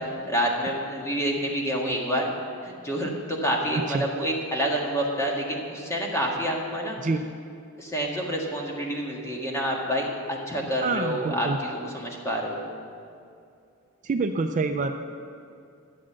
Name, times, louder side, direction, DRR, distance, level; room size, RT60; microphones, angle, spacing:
voice 1, 0.3-2.3 2.6-7.0 7.8-12.6, equal, 15° left, -1 dB, 1.6 m, -28 dB
voice 2, 3.7-4.1 7.0-7.2 10.8-11.6 14.0-15.0, right 3 dB, 35° right, 6 dB, 0.4 m, -27 dB
12.0 x 7.5 x 7.4 m, 2.5 s
head